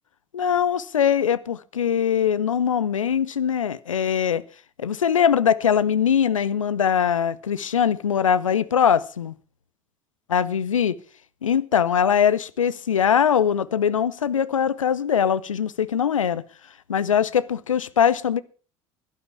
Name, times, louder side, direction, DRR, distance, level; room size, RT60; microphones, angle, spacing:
voice 1, 0.3-4.4 4.8-9.3 10.3-11.0 11.4-16.4 16.9-18.4, left 8 dB, 80° left, 0.7 m, -21 dB
16.5 x 12.0 x 4.8 m
figure-of-eight pair, 65°, 16 cm